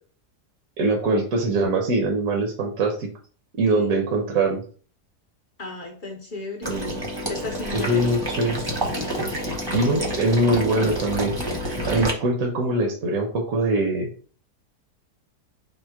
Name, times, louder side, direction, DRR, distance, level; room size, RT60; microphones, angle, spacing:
voice 1, 0.8-3.1 3.6-4.6 6.7-7.1 7.7-8.6 9.7-11.3 11.6-14.1, right 2 dB, 60° right, 1 dB, 1.1 m, -23 dB
voice 2, 5.6-6.7 7.3-8.2, left 2 dB, 40° left, -1 dB, 0.9 m, -34 dB
Water / Liquid, 6.6-12.1, equal, 20° right, 0.8 m, -28 dB
4.3 x 2.1 x 4.6 m, 0.42 s
omnidirectional pair, 1.7 m